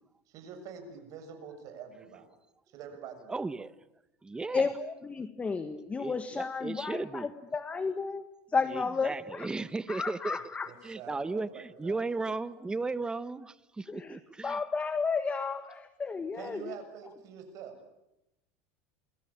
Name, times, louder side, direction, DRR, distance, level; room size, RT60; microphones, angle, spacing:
voice 1, 0.3-2.3 2.7-3.4 10.7-12.0 16.3-17.8, right 7 dB, 50° right, 6 dB, 6.8 m, -46 dB
voice 2, 3.3-3.7 4.2-4.6 6.0-7.3 8.7-10.4 10.8-14.6, right 3 dB, 10° right, 15 dB, 1.0 m, -35 dB
voice 3, 4.5-9.5 9.9-10.7 13.9-16.8, left 4 dB, 20° left, 10 dB, 1.5 m, -33 dB
28.5 x 22.5 x 8.8 m, 0.90 s
supercardioid pair, 130°, 7 cm